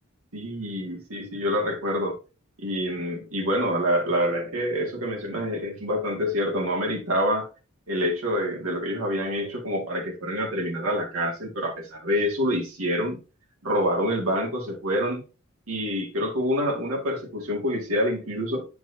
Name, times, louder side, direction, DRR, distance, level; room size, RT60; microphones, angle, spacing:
voice 1, 0.3-2.2 2.6-7.5 7.9-13.2 13.6-15.2 15.7-18.7, equal, 90° right, 1.9 m, -26 dB
9.6 x 4.6 x 2.7 m
head